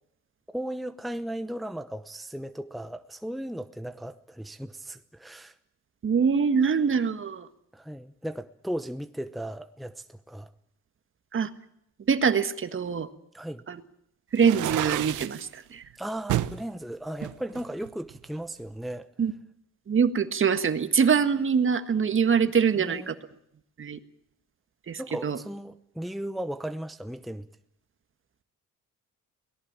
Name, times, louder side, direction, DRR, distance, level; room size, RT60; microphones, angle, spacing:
voice 1, 0.5-5.6 7.7-10.5 13.3-13.6 16.0-19.1 22.8-23.2 25.0-27.5, right 1 dB, ahead, 0.9 m, -36 dB
voice 2, 6.0-7.5 11.3-11.5 12.1-13.1 13.7-13.8 14.3-15.8 19.2-19.3 19.9-23.1 23.8-24.0 24.9-25.4, right 6 dB, 40° right, 1.6 m, -24 dB
sound 1, 14.4-15.4 16.3-16.6 17.2-18.3, right 14 dB, 80° right, 0.9 m, -30 dB
23.0 x 18.0 x 8.8 m
cardioid pair, 90°, 30 cm